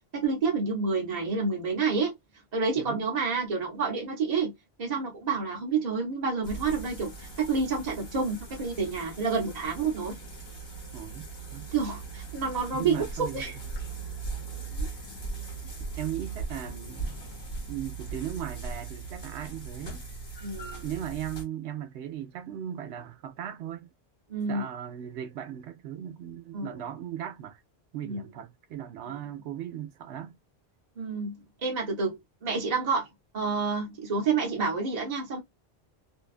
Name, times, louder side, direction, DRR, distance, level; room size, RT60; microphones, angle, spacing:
voice 1, 0.1-2.1 2.5-4.5 4.8-10.2 11.7-13.5 14.7-14.9 20.4-20.8 24.3-24.7 26.5-26.7 28.0-28.2 31.0-33.1 33.3-35.4, right 4 dB, 40° right, 0.9 m, -29 dB
voice 2, 2.8-3.1 10.9-11.7 12.7-13.4 16.0-17.2 17.7-20.1 20.8-23.9 24.5-27.6 27.9-30.4, right 10 dB, 90° right, 0.9 m, -37 dB
sound 1, 6.4-21.4, right 4 dB, 50° left, 1.3 m, -39 dB
2.6 x 2.2 x 2.4 m
omnidirectional pair, 1.1 m